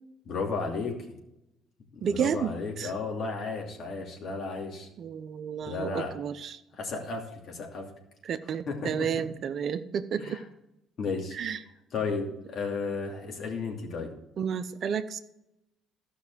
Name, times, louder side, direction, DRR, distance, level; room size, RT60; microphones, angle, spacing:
voice 1, 0.2-1.2 1.9-4.9 5.6-6.1 6.7-7.9 8.7-9.1 10.2-10.4 11.0-11.4 11.9-14.1, left 4 dB, 60° left, 1 dB, 2.8 m, -33 dB
voice 2, 2.0-2.9 5.0-6.6 8.2-10.4 11.3-11.6 14.4-15.2, right 7 dB, 55° right, 11 dB, 0.7 m, -31 dB
13.5 x 6.1 x 6.3 m, 0.87 s
supercardioid pair, 65°, 0 cm